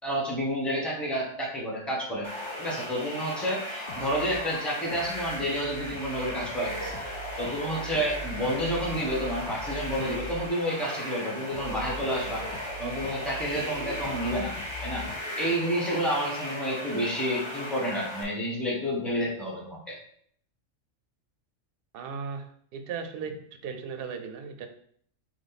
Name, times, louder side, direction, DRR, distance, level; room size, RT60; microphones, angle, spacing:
voice 1, 0.0-2.3 2.6-6.9 7.4-12.4 12.8-14.5 14.8-15.1 15.4-20.0, equal, ahead, -4 dB, 1.2 m, -30 dB
sound 1, 2.2-18.2, left 1 dB, 25° left, 0.8 m, -37 dB
sound 2, 2.4-15.2, equal, 65° left, 0.5 m, -43 dB
voice 2, 21.9-24.7, right 6 dB, 60° right, 6 dB, 0.7 m, -37 dB
4.0 x 3.2 x 4.0 m, 0.63 s
omnidirectional pair, 1.3 m